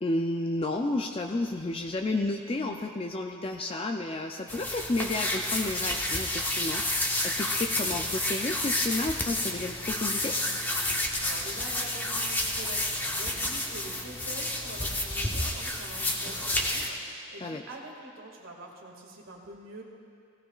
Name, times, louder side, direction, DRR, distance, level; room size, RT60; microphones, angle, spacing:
voice 1, 0.0-10.4 17.4-17.6, left 2 dB, 30° left, 3 dB, 0.4 m, -31 dB
sound 1, 4.5-16.9, left 1 dB, 10° left, 0.8 m, -30 dB
voice 2, 11.2-19.8, right 1 dB, 90° right, -1 dB, 2.1 m, -45 dB
17.5 x 16.0 x 2.4 m, 2.4 s
head